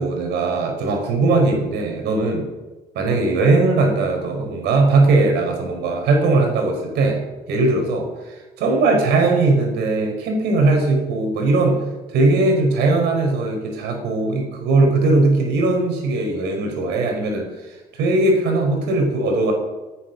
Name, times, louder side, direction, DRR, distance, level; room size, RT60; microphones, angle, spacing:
voice 1, 0.0-2.5 2.9-11.8 12.1-19.5, right 3 dB, 80° right, 2 dB, 4.9 m, -19 dB
20.0 x 9.9 x 6.3 m, 1.2 s
cardioid pair, 110°, 17 cm